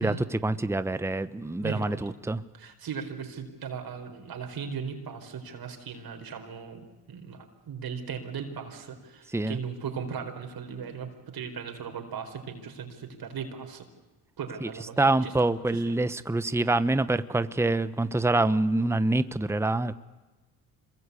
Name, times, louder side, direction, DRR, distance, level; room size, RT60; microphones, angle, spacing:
voice 1, 0.4-2.4 9.3-9.6 14.6-14.7 15.0-19.9, right 2 dB, 5° right, 13 dB, 1.0 m, -26 dB
voice 2, 1.6-2.0 2.5-13.9 14.4-15.3 15.7-15.9, right 6 dB, 60° right, 5 dB, 4.5 m, -38 dB
26.5 x 22.5 x 8.4 m, 1.2 s
supercardioid pair, 65°, 40 cm